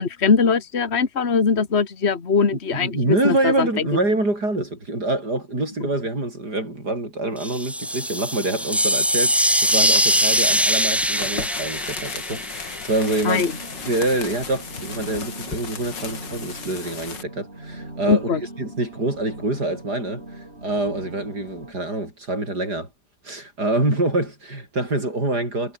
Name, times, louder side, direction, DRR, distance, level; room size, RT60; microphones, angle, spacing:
voice 1, 0.0-3.9 13.3-13.5 18.1-18.4, left 5 dB, 35° left, 2.2 m, -21 dB
voice 2, 2.7-13.4 13.9-22.9 23.2-25.8, right 2 dB, 60° right, 8.6 m, -26 dB
sound 1, 7.4-13.3, equal, ahead, 1.4 m, -22 dB
sound 2, 9.5-17.2, left 6 dB, 80° left, 3.1 m, -35 dB
sound 3, 12.9-21.7, right 1 dB, 35° right, 6.8 m, -40 dB
omnidirectional pair, 1.9 m